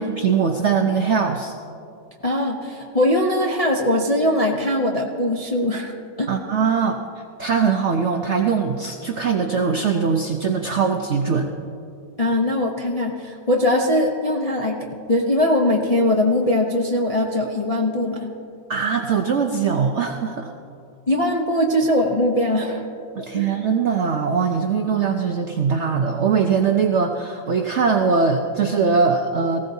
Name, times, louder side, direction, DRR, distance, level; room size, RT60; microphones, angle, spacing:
voice 1, 0.0-1.5 6.3-7.0 7.4-11.5 18.7-20.5 23.2-29.6, right 5 dB, 65° right, 4 dB, 0.7 m, -21 dB
voice 2, 2.2-5.9 6.2-6.3 12.2-18.3 21.1-22.9 23.3-23.5, left 1 dB, 40° left, -1 dB, 0.5 m, -21 dB
19.0 x 15.5 x 2.7 m, 2.6 s
omnidirectional pair, 1.9 m